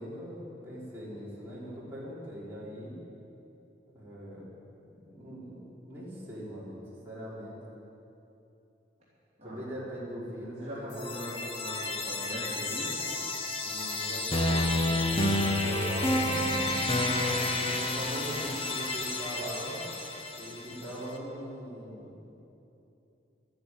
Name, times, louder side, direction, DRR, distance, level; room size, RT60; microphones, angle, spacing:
voice 1, 0.0-3.0 3.9-4.5 4.8-6.8 7.0-7.6 9.4-11.1 13.6-16.8 17.6-19.9 20.4-22.1, equal, 10° right, -9 dB, 4.2 m, -41 dB
voice 2, 10.6-13.0, equal, 35° right, -8 dB, 3.3 m, -41 dB
sound 1, 10.9-20.8, left 2 dB, 30° left, 1.1 m, -30 dB
13.0 x 10.5 x 9.2 m, 2.9 s
head